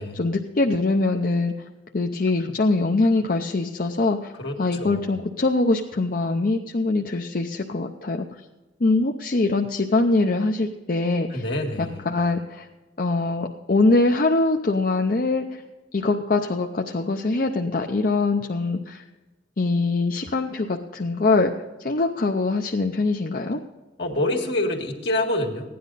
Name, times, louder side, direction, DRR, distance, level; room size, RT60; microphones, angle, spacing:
voice 1, 0.1-1.5 1.9-4.3 4.6-8.3 8.8-11.4 11.8-12.7 13.0-15.6 15.9-19.0 19.6-21.5 21.8-23.6, left 3 dB, 50° left, 2 dB, 0.6 m, -23 dB
voice 2, 4.4-5.0 11.3-12.1 24.0-25.8, left 1 dB, 70° left, 1 dB, 1.9 m, -26 dB
16.0 x 10.5 x 4.0 m, 1.2 s
head